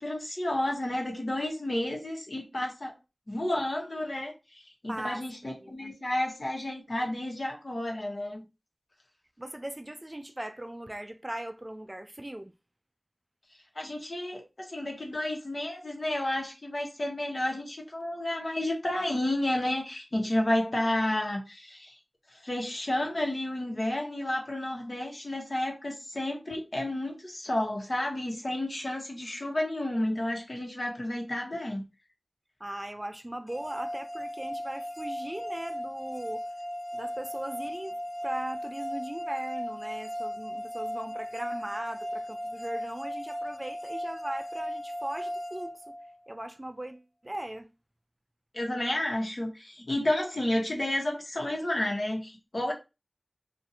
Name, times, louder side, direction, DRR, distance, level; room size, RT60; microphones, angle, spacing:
voice 1, 0.0-2.9 3.3-8.4 13.7-22.0 22.3-31.8 48.5-52.7, left 1 dB, 65° left, 1.1 m, -31 dB
voice 2, 4.9-5.2 5.6-5.9 9.4-12.5 32.6-36.4 36.9-45.9 46.3-47.7, right 1 dB, 30° right, 0.4 m, -39 dB
sound 1, 33.5-46.5, equal, 25° left, 0.7 m, -37 dB
2.6 x 2.5 x 4.1 m
wide cardioid pair, 45°, 0 cm